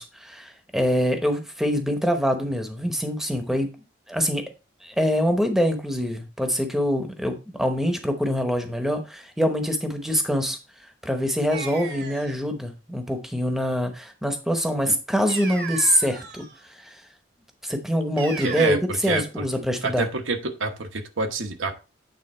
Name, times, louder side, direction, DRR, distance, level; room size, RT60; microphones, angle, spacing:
voice 1, 0.0-3.7 4.1-4.4 4.8-10.6 11.0-17.0 17.6-20.1, equal, ahead, 5 dB, 0.8 m, -25 dB
sound 1, 11.5-12.4 15.3-16.6 18.2-18.8, right 5 dB, 55° right, 1.1 m, -35 dB
voice 2, 18.4-19.4 19.8-21.7, right 3 dB, 85° right, 5 dB, 1.2 m, -27 dB
8.7 x 3.6 x 4.2 m, 0.31 s
head